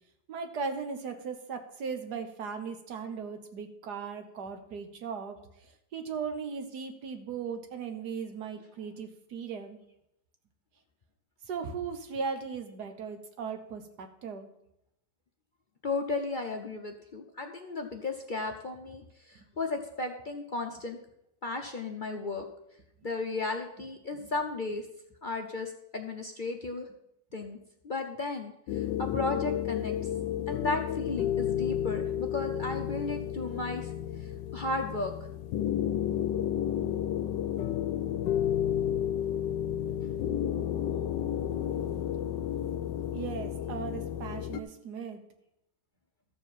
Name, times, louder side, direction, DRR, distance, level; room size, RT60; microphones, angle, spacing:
voice 1, 0.3-9.8 11.5-14.5 19.4-19.5 24.2-24.3 43.1-45.2, right 5 dB, 65° right, 7 dB, 1.7 m, -38 dB
voice 2, 15.8-21.0 21.4-22.5 23.0-24.9 25.2-26.9 27.3-27.6 27.8-29.9 30.5-35.1, left 3 dB, 50° left, 3 dB, 0.5 m, -34 dB
sound 1, 28.7-44.6, left 10 dB, 85° left, 1.2 m, -31 dB
13.5 x 4.6 x 7.1 m, 0.80 s
omnidirectional pair, 1.9 m